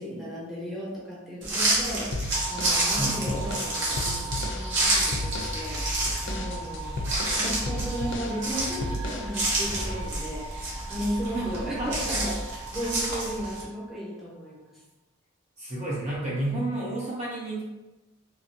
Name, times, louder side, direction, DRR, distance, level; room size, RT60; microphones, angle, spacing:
voice 1, 0.0-7.0 7.3-14.8, equal, ahead, -7 dB, 0.8 m, -35 dB
sound 1, 1.4-13.6, right 1 dB, 60° right, 0.8 m, -29 dB
sound 2, 2.1-4.7 5.1-5.6 5.9-8.4 8.8-9.3, left 1 dB, 60° left, 0.4 m, -34 dB
sound 3, 2.3-14.5, right 4 dB, 90° right, 0.3 m, -41 dB
voice 2, 11.2-11.9 12.8-12.9 15.6-17.6, right 1 dB, 30° right, -7 dB, 0.5 m, -31 dB
2.9 x 2.6 x 2.6 m, 1.1 s
head